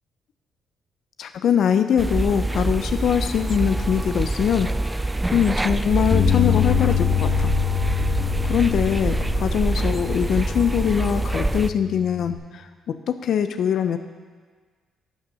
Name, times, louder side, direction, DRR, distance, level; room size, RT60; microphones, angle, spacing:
voice 1, 1.2-5.0 5.3-7.5 8.1-12.7 13.1-14.0, left 8 dB, 65° left, 9 dB, 0.5 m, -23 dB
sound 1, 2.0-11.7, right 2 dB, 15° right, 0.4 m, -25 dB
Bass guitar, 6.1-12.4, left 11 dB, 45° left, 1.1 m, -26 dB
11.5 x 6.6 x 6.2 m, 1.5 s
cardioid pair, 90°, 0 cm